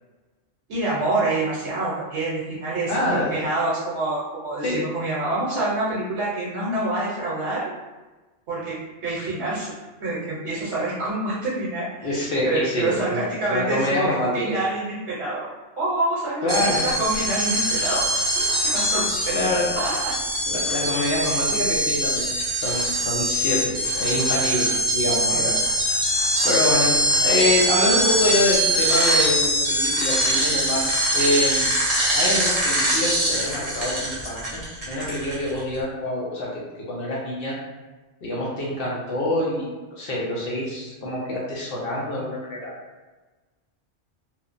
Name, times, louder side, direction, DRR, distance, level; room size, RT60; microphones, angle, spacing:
voice 1, 0.7-7.6 8.5-9.7 10.0-14.1 14.3-15.5 15.8-19.4 19.7-20.2 20.6-20.8 25.3-25.5, right 2 dB, 65° right, -7 dB, 0.9 m, -27 dB
voice 2, 2.9-3.3 4.6-4.8 12.0-14.3 16.4-16.8 19.3-19.7 20.5-22.3 22.6-25.5 26.4-26.9 27.2-31.7 32.1-34.6 34.9-36.5 36.9-37.6 38.2-42.7, left 1 dB, 60° left, -5 dB, 0.7 m, -25 dB
sound 1, 16.5-35.6, equal, 35° right, 0.7 m, -23 dB
3.0 x 2.0 x 2.4 m, 1.2 s
omnidirectional pair, 1.3 m